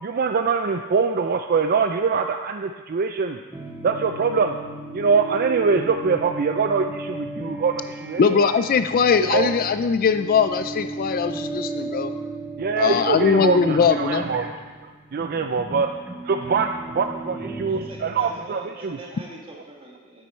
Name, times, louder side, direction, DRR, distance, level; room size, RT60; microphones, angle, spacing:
voice 1, 0.0-3.4 3.8-4.6 4.9-8.5 9.2-9.5 12.6-14.6 15.1-15.9 16.2-19.0, right 5 dB, 40° right, 6 dB, 0.4 m, -23 dB
sound 1, 3.5-18.7, right 3 dB, 10° right, 0.8 m, -35 dB
voice 2, 8.2-12.1 12.8-14.3, left 6 dB, 40° left, 11 dB, 0.3 m, -20 dB
voice 3, 17.6-20.3, right 1 dB, 25° right, -2 dB, 1.9 m, -42 dB
10.0 x 9.2 x 4.4 m, 1.3 s
head